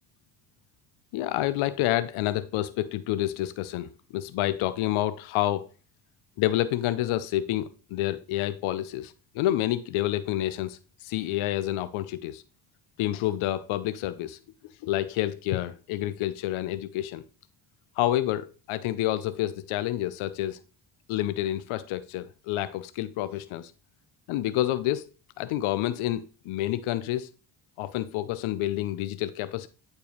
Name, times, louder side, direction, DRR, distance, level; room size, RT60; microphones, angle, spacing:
voice 1, 1.1-5.7 6.4-12.4 13.0-14.4 14.8-17.2 18.0-20.6 21.1-23.7 24.3-25.1 25.4-27.3 27.8-29.7, left 14 dB, 80° left, 0.6 m, -28 dB
8.5 x 4.5 x 3.0 m
supercardioid pair, 60°, 48 cm